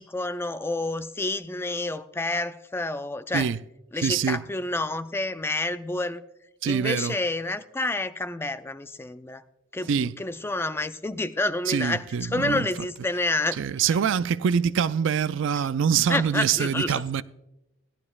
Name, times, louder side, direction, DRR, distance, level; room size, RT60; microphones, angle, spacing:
voice 1, 0.0-3.5 3.9-6.2 6.6-9.4 9.7-13.7 16.1-17.2, left 2 dB, 10° left, 0.4 m, -29 dB
voice 2, 4.0-4.4 6.6-7.2 9.9-10.1 11.7-12.7 13.6-17.2, right 7 dB, 65° right, 0.4 m, -24 dB
17.0 x 12.0 x 2.4 m
head